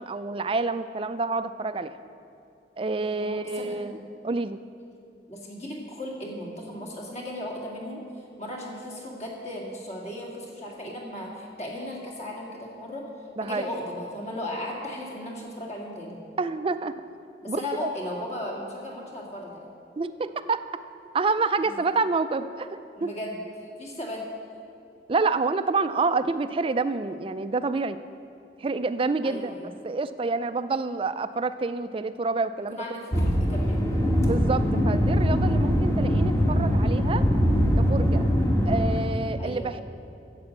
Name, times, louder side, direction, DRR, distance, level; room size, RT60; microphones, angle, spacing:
voice 1, 0.0-1.9 2.8-4.6 13.4-13.7 16.4-16.9 17.5-17.9 20.0-20.7 21.1-23.1 25.1-28.0 28.6-29.5 29.8-32.8 34.2-37.2 37.8-38.2 38.7-39.8, right 3 dB, 30° right, 12 dB, 0.4 m, -28 dB
voice 2, 3.2-3.8 5.3-8.1 8.4-13.1 13.4-16.2 17.4-19.7 21.6-21.7 23.0-23.4 23.8-24.3 29.2-29.7 32.7-33.8 39.4-39.7, left 1 dB, 40° left, -2 dB, 2.0 m, -36 dB
sound 1, 33.1-39.0, equal, 20° left, 1.2 m, -22 dB
10.5 x 7.6 x 7.6 m, 2.6 s
head